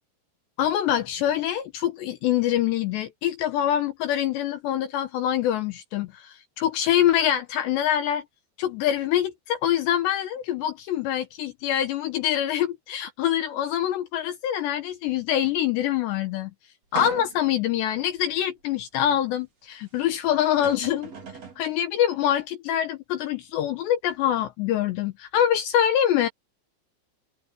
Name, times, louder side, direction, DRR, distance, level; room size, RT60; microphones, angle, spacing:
voice 1, 0.6-8.2 8.6-16.5 16.9-21.1 21.6-26.3, left 11 dB, 75° left, 3.0 m, -25 dB
sound 1, 17.0-17.6 18.2-18.3 20.1-20.2 20.5-21.6, right 5 dB, 35° right, 4.9 m, -38 dB
omnidirectional pair, 5.6 m